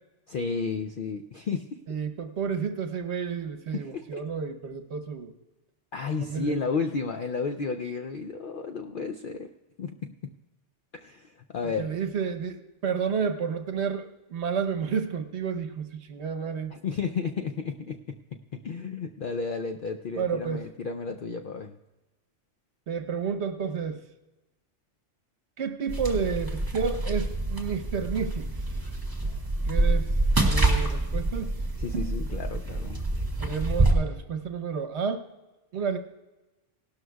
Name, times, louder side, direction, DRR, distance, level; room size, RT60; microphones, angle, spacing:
voice 1, 0.3-1.8 3.7-4.2 5.9-9.5 9.8-10.4 10.9-11.9 16.7-21.8 31.8-33.0, left 5 dB, 60° left, 5 dB, 0.6 m, -33 dB
voice 2, 1.9-5.3 6.2-6.5 11.8-16.7 20.2-20.6 22.9-24.0 25.6-28.5 29.7-30.1 30.4-31.6 31.9-32.1 33.4-35.2 35.7-36.0, right 6 dB, 65° right, 7 dB, 1.1 m, -30 dB
sound 1, 25.9-33.9, right 2 dB, 20° right, 1.8 m, -27 dB
17.5 x 12.5 x 2.3 m, 1.1 s
omnidirectional pair, 1.2 m